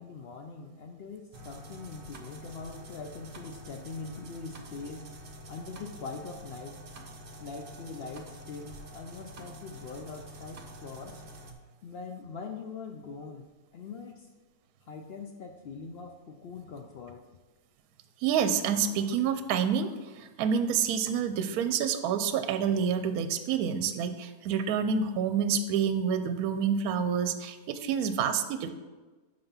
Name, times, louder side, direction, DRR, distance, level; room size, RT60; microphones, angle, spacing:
voice 1, 0.0-5.1 5.5-6.8 7.4-11.2 11.8-14.3 14.8-17.3, left 4 dB, 85° left, 3 dB, 0.5 m, -42 dB
sound 1, 1.3-11.5, equal, 45° right, 0.7 m, -47 dB
voice 2, 18.2-28.7, right 7 dB, 70° right, 9 dB, 1.0 m, -28 dB
5.7 x 5.4 x 5.6 m, 1.2 s
omnidirectional pair, 1.7 m